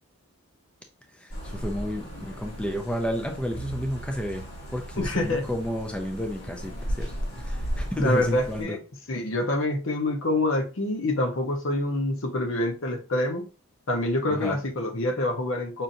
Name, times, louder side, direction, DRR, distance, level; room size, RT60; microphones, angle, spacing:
voice 1, 1.1-4.4 4.7-8.8 14.3-14.6, equal, 5° left, 0.4 m, -31 dB
sound 1, 1.3-8.6, equal, 85° left, 1.8 m, -36 dB
Bowed string instrument, 3.5-7.7, right 5 dB, 20° right, 1.0 m, -47 dB
voice 2, 5.0-5.4 8.0-8.8 9.1-13.4 13.9-15.8, left 1 dB, 60° left, 0.8 m, -26 dB
5.5 x 2.6 x 2.5 m
head